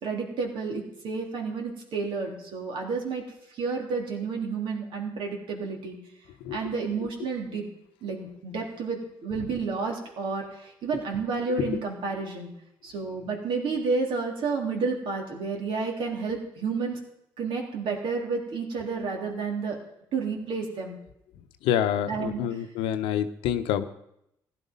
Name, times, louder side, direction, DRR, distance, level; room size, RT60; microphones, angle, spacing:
voice 1, 0.0-3.2 3.5-6.0 6.5-7.6 8.0-12.5 12.8-17.0 17.4-19.8 20.1-21.0 22.1-22.4, right 4 dB, 70° right, 1 dB, 3.4 m, -30 dB
voice 2, 21.6-23.8, left 10 dB, 85° left, 10 dB, 0.9 m, -27 dB
15.5 x 11.0 x 5.4 m, 0.79 s
supercardioid pair, 60°, 9 cm